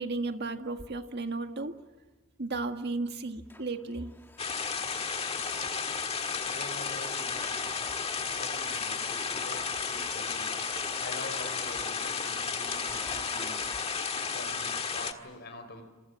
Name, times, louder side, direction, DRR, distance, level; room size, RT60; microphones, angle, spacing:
voice 1, 0.0-1.7 2.4-4.1, right 3 dB, 50° right, 6 dB, 1.7 m, -34 dB
Domestic sounds home sounds, 3.3-13.9, left 1 dB, 10° left, 1.6 m, -50 dB
sound 1, 4.4-15.1, left 5 dB, 30° left, 1.6 m, -33 dB
voice 2, 6.5-7.6 8.4-10.7 11.0-13.7 14.3-15.8, left 2 dB, 50° left, 7 dB, 5.2 m, -45 dB
27.5 x 27.0 x 7.5 m, 1.3 s
head